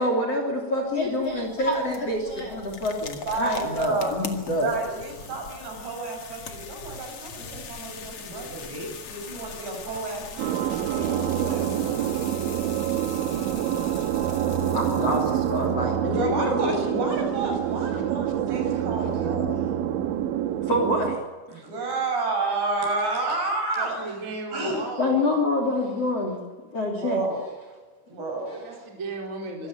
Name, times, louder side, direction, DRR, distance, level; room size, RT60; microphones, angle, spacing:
voice 1, 0.0-4.7 14.7-16.7 20.7-21.2 21.5-21.6 25.0-26.4 26.7-27.2 28.5-28.6, left 1 dB, 35° left, 3 dB, 3.6 m, -26 dB
sound 1, 0.8-15.7, left 6 dB, 55° left, 1.5 m, -41 dB
voice 2, 3.2-4.3 4.6-12.0 15.0-15.1 16.1-19.6 21.5-24.0 24.5-24.9 26.9-27.5 28.1-28.6, right 3 dB, 55° right, 2 dB, 8.6 m, -30 dB
sound 2, 10.4-21.2, right 10 dB, 70° right, 3.3 m, -26 dB
voice 3, 23.8-25.4 28.6-29.7, right 3 dB, 15° right, 0 dB, 4.1 m, -36 dB
25.5 x 16.5 x 9.1 m, 1.3 s
omnidirectional pair, 5.9 m